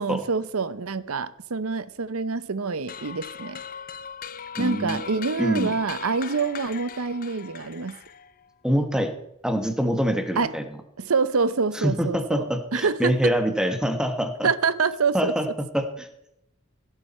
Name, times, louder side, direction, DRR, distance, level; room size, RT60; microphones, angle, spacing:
voice 1, 0.0-3.6 4.6-8.0 10.4-10.5 11.0-13.3 14.4-15.3, right 4 dB, 85° right, 0.8 m, -26 dB
sound 1, 2.9-8.5, left 7 dB, 40° left, 0.5 m, -39 dB
voice 2, 4.6-5.0 5.4-5.7 8.6-9.1 9.4-10.6 11.7-14.5 15.1-15.5 15.7-16.1, equal, 5° right, 1.4 m, -25 dB
16.5 x 9.7 x 4.3 m
head